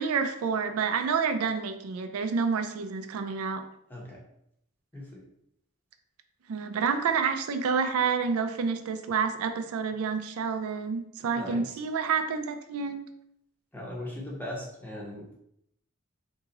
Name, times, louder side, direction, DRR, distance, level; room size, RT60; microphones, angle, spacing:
voice 1, 0.0-3.6 6.5-13.0, right 5 dB, 85° right, 7 dB, 0.4 m, -28 dB
voice 2, 3.9-4.2 4.9-5.2 11.3-11.8 13.7-15.3, left 1 dB, 10° left, -3 dB, 0.7 m, -39 dB
2.9 x 2.7 x 3.7 m, 0.77 s
head